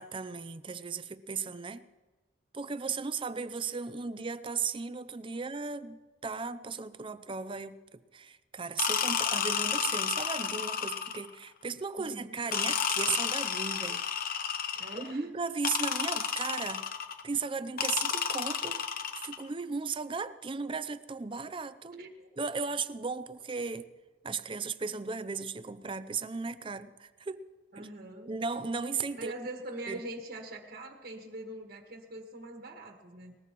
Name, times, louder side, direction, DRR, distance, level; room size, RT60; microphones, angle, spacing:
voice 1, 0.0-1.9 2.5-14.0 14.9-16.8 17.2-18.8 19.1-22.0 22.4-23.9 24.2-27.4 27.8-27.9 28.3-29.3 29.9-30.0, right 5 dB, 30° right, 13 dB, 0.6 m, -36 dB
sound 1, 8.8-11.3 12.5-15.1 15.6-17.2 17.8-19.4, left 7 dB, 50° left, 0.9 m, -31 dB
voice 2, 12.0-12.4 14.7-15.3 21.9-22.3 27.7-28.4 29.2-33.4, right 1 dB, 55° right, 3 dB, 1.6 m, -43 dB
20.5 x 20.0 x 3.1 m, 1.3 s
head